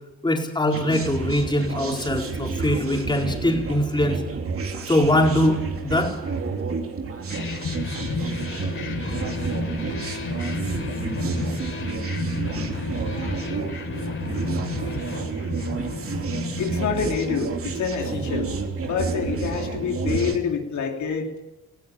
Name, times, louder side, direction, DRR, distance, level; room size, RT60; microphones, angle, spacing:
voice 1, 0.2-4.2 4.9-6.2, left 1 dB, 15° left, 1 dB, 4.5 m, -22 dB
sound 1, 0.7-20.4, right 5 dB, 50° right, 3.0 m, -30 dB
sound 2, 7.3-17.8, left 3 dB, 45° left, 4.0 m, -31 dB
voice 2, 16.6-18.5 18.8-21.4, left 6 dB, 75° left, 2 dB, 3.2 m, -27 dB
19.0 x 16.5 x 9.0 m, 0.97 s
cardioid pair, 105°, 29 cm